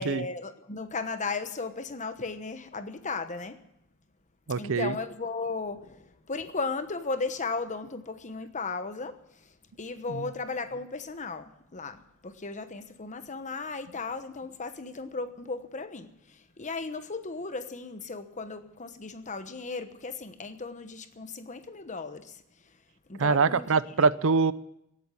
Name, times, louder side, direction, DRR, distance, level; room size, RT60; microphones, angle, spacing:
voice 1, 0.0-3.6 4.6-9.2 9.8-22.4 23.1-23.8, left 4 dB, 35° left, 1.1 m, -36 dB
voice 2, 4.5-5.0 10.1-10.2 23.2-24.5, right 4 dB, 65° right, 0.6 m, -24 dB
17.0 x 8.5 x 9.9 m
head